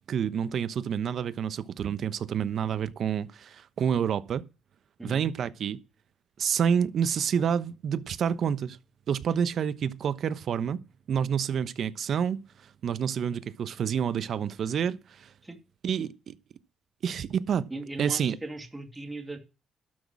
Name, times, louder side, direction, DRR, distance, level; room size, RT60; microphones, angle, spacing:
voice 1, 0.1-4.4 5.0-5.8 6.4-8.8 9.1-10.8 11.1-15.3 15.8-16.3 17.0-17.7 18.0-18.4, right 8 dB, 60° right, 1.0 m, -28 dB
voice 2, 17.7-19.4, right 2 dB, 15° right, 2.8 m, -38 dB
12.5 x 6.3 x 7.4 m
cardioid pair, 90°, 0 cm